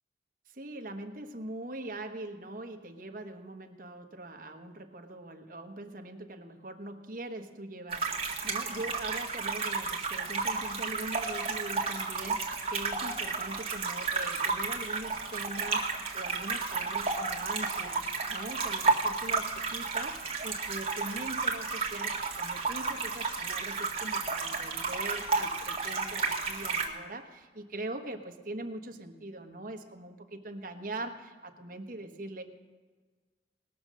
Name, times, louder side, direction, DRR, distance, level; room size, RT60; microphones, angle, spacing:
voice 1, 0.5-32.4, right 2 dB, 50° right, 5 dB, 1.2 m, -42 dB
sound 1, 7.9-26.9, right 4 dB, 35° right, 1.8 m, -32 dB
20.0 x 6.7 x 6.3 m, 1.4 s
head